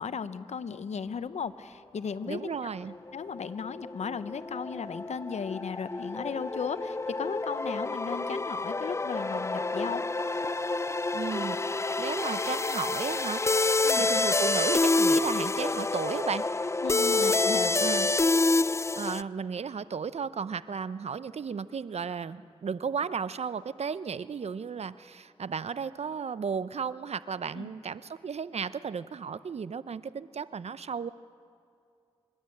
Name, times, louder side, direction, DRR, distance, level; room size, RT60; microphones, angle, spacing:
voice 1, 0.0-2.6 3.1-10.0 13.8-14.1 16.8-18.0 27.5-27.7, left 6 dB, 80° left, 13 dB, 0.8 m, -36 dB
voice 2, 2.3-3.0 11.1-11.6 12.0-13.4 13.9-16.7 17.8-18.1 18.5-31.1, right 6 dB, 70° right, 15 dB, 0.7 m, -34 dB
sound 1, 3.0-19.2, left 3 dB, 25° left, 0.4 m, -28 dB
26.5 x 12.0 x 8.5 m, 2.4 s
cardioid pair, 45°, 11 cm